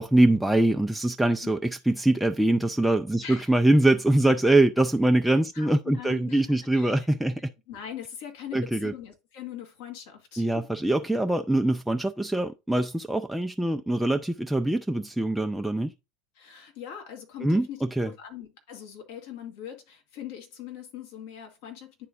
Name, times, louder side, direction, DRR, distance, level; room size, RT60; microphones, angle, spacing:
voice 1, 0.0-7.5 8.5-8.9 10.4-15.9 17.4-18.1, right 1 dB, 5° right, 0.3 m, -23 dB
voice 2, 5.5-6.4 6.7-7.1 7.7-10.5 16.3-22.1, left 9 dB, 60° left, 1.6 m, -41 dB
10.0 x 3.7 x 2.5 m
figure-of-eight pair, 75°, 0 cm